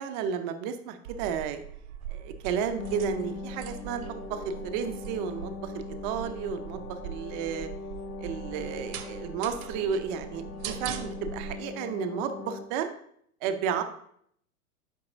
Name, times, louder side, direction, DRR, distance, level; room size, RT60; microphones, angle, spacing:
voice 1, 0.0-1.6 2.1-7.7 8.2-12.9 13.4-13.8, right 7 dB, 35° right, 8 dB, 0.5 m, -32 dB
sound 1, 1.0-11.5, right 8 dB, 65° right, 0.7 m, -42 dB
sound 2, 2.8-12.7, left 4 dB, 80° left, 0.7 m, -41 dB
8.5 x 5.3 x 2.5 m, 0.67 s
figure-of-eight pair, 95°, 45 cm